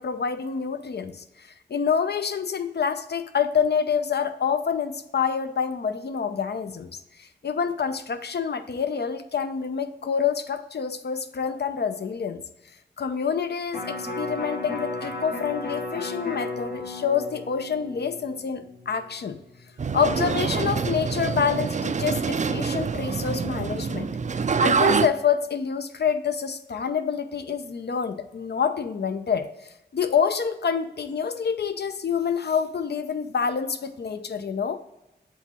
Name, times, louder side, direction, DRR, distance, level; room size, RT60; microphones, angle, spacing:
voice 1, 0.0-12.4 13.0-19.4 19.9-24.1 24.6-29.5 29.9-34.8, left 6 dB, 65° left, 10 dB, 0.6 m, -27 dB
Electric guitar, 13.7-19.9 20.3-20.4, left 2 dB, 80° left, 2.0 m, -35 dB
sound 1, 19.8-25.1, right 5 dB, 40° right, 0.4 m, -25 dB
7.9 x 3.6 x 4.3 m, 0.89 s
wide cardioid pair, 75°, 19 cm